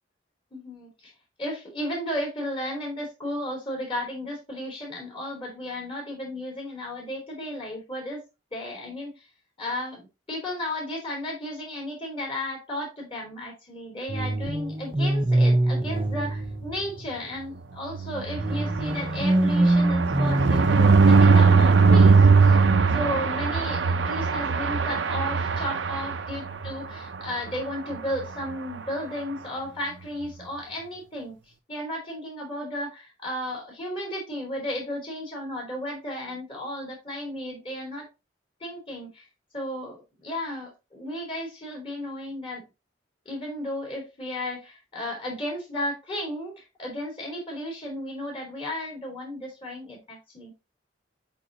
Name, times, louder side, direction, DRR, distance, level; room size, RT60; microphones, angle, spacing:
voice 1, 0.5-1.1 1.4-8.2 8.5-9.1 9.6-22.6 22.9-31.4 31.7-38.1 38.6-39.2 39.5-42.6 43.3-50.5, left 1 dB, 30° left, 0 dB, 3.6 m, -34 dB
sound 1, 14.1-17.2 18.4-21.3, right 1 dB, 30° right, 0.7 m, -25 dB
sound 2, 17.9-26.7 27.1-27.3 27.6-27.7 27.9-28.2, right 4 dB, 75° right, 0.6 m, -20 dB
8.0 x 4.1 x 2.8 m, 0.26 s
head